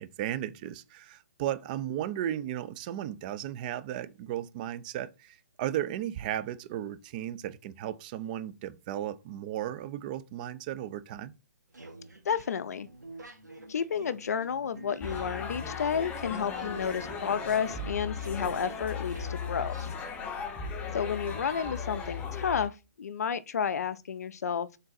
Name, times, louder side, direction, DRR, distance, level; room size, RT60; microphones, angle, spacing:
voice 1, 0.0-11.3, right 11 dB, 30° right, 0.3 m, -35 dB
sound 1, 11.7-19.9, right 2 dB, 85° right, 1.0 m, -48 dB
voice 2, 12.3-12.9 13.7-19.9 20.9-24.7, left 7 dB, 65° left, 0.4 m, -31 dB
sound 2, 15.0-22.7, left 5 dB, 15° left, 0.8 m, -37 dB
3.8 x 3.8 x 2.6 m
figure-of-eight pair, 130°, 9 cm